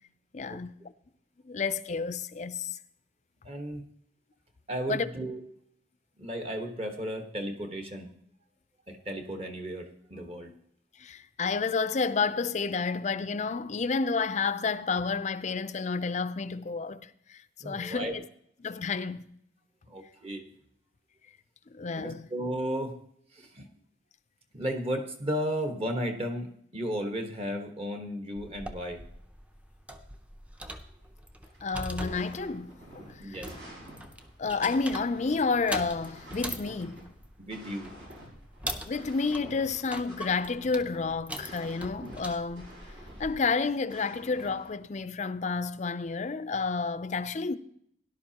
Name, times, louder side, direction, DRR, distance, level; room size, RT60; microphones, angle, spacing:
voice 1, 0.3-0.7 1.4-2.8 4.9-5.1 11.0-18.2 18.6-19.2 21.7-22.3 31.6-33.0 33.3-33.4 34.4-37.0 38.9-42.7 43.2-47.6, left 4 dB, 40° left, 0.5 m, -30 dB
voice 2, 3.4-3.8 4.7-5.4 6.2-8.1 8.9-10.5 17.6-18.2 19.9-20.4 22.0-22.9 23.3-23.7 24.5-29.0 33.2-33.5 37.4-37.9, equal, 35° right, 1.3 m, -34 dB
sound 1, 28.4-43.4, equal, 10° right, 0.6 m, -42 dB
sound 2, 31.4-45.0, equal, 75° right, 4.9 m, -49 dB
17.5 x 11.0 x 2.9 m
head